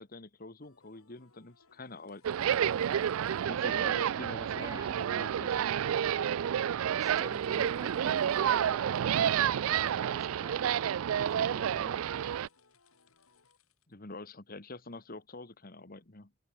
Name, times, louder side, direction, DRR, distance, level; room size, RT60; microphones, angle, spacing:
voice 1, 0.0-2.7 3.5-5.6 13.9-16.3, left 2 dB, 45° left, 1.6 m, -46 dB
sound 1, 0.6-13.9 14.9-15.0, left 4 dB, 90° left, 5.3 m, -67 dB
sound 2, 2.2-12.5, right 9 dB, 75° right, 0.4 m, -30 dB
voice 2, 4.5-5.0 7.0-10.9 11.2-12.2, right 1 dB, 15° right, 1.3 m, -49 dB
head